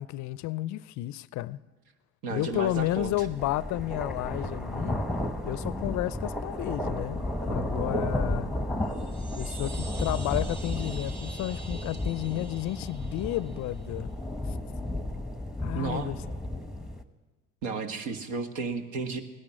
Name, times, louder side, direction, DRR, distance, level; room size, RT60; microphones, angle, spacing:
voice 1, 0.0-1.6 2.3-5.0 5.4-8.5 9.4-14.1 15.6-16.2, left 16 dB, 50° left, 0.5 m, -32 dB
voice 2, 2.2-3.3 15.7-16.1 17.6-19.2, right 4 dB, 70° right, 1.7 m, -33 dB
sound 1, 2.5-17.0, left 1 dB, ahead, 1.1 m, -33 dB
sound 2, 8.8-13.9, right 3 dB, 45° right, 3.3 m, -47 dB
17.0 x 10.5 x 7.6 m
hypercardioid pair, 80°, 37 cm